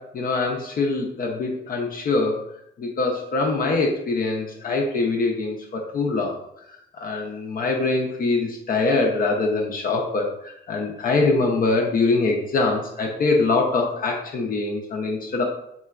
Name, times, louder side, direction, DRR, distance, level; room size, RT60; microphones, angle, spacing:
voice 1, 0.0-2.4 2.8-6.4 6.9-15.4, left 3 dB, 45° left, 0 dB, 0.5 m, -23 dB
3.7 x 2.2 x 2.4 m, 0.78 s
cardioid pair, 90°, 20 cm